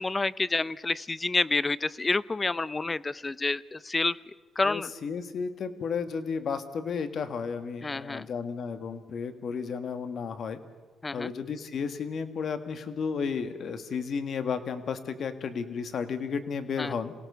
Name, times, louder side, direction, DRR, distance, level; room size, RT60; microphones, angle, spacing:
voice 1, 0.0-4.2 4.6-4.9 7.8-8.3 11.0-11.3 16.8-16.9, left 3 dB, 25° left, 20 dB, 0.6 m, -28 dB
voice 2, 4.6-10.6 11.1-17.1, left 6 dB, 55° left, 10 dB, 1.8 m, -33 dB
27.5 x 17.5 x 6.9 m, 1.4 s
cardioid pair, 90°, 0 cm